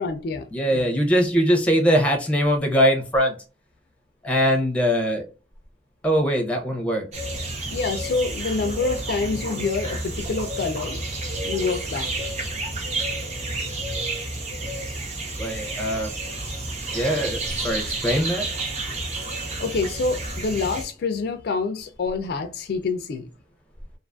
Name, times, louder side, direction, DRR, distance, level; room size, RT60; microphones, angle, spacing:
voice 1, 0.0-0.9 7.7-11.0 11.4-12.5 19.6-23.3, left 4 dB, 60° left, 0.3 m, -27 dB
voice 2, 0.5-3.3 4.2-5.2 6.0-7.1 15.4-16.1 16.9-18.5, equal, 5° left, 0.5 m, -21 dB
sound 1, 7.1-20.8, right 2 dB, 40° right, 0.6 m, -30 dB
2.5 x 2.3 x 2.4 m
head